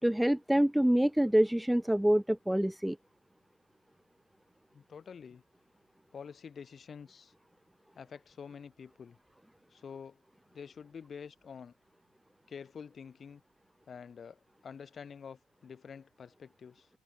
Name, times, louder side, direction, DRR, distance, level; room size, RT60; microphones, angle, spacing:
voice 1, 0.0-3.0, right 1 dB, 5° right, 0.3 m, -26 dB
voice 2, 4.7-5.4 6.1-7.3 7.9-9.2 9.7-10.2 10.5-11.7 12.5-13.4 13.9-16.9, left 6 dB, 40° left, 7.8 m, -48 dB
open air
hypercardioid pair, 55°, 0 cm